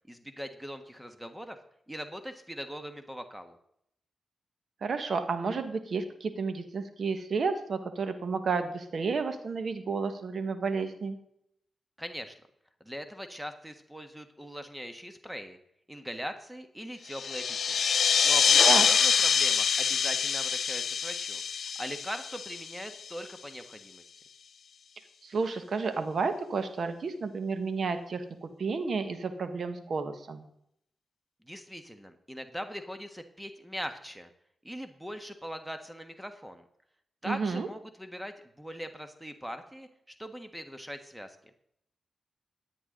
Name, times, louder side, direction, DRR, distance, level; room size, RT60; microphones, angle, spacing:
voice 1, 0.1-1.6 1.9-3.6 12.0-12.3 12.8-15.6 15.9-17.8 18.2-21.4 21.8-24.0 31.5-34.3 34.6-36.6 37.2-39.9 40.2-41.4, equal, 5° right, 8 dB, 1.5 m, -41 dB
voice 2, 4.8-11.2 18.7-18.8 25.2-30.4 37.2-37.7, right 4 dB, 65° right, 9 dB, 1.6 m, -31 dB
sound 1, 17.1-23.2, left 7 dB, 70° left, 0.4 m, -25 dB
14.0 x 9.7 x 3.9 m, 0.74 s
cardioid pair, 55°, 0 cm